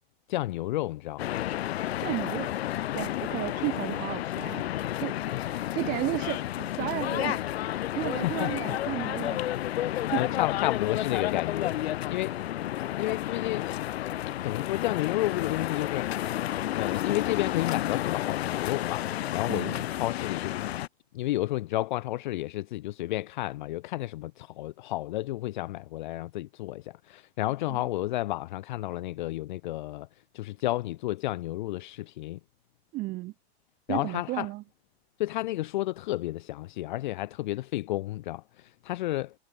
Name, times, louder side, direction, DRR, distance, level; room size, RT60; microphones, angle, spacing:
voice 1, 0.3-1.2 5.3-5.4 8.1-8.7 9.2-9.6 9.9-12.4 12.9-13.8 14.4-16.3 16.7-20.7 21.1-30.1 30.3-32.4 33.9-34.5 35.2-39.3, left 16 dB, 45° left, 0.9 m, -32 dB
sound 1, 1.2-20.9, left 13 dB, 70° left, 1.3 m, -31 dB
voice 2, 2.0-9.4 9.7-10.3 19.5-19.8 27.7-27.8 32.9-33.3 33.9-34.6, right 19 dB, 25° right, 2.7 m, -34 dB
supercardioid pair, 170°, 32 cm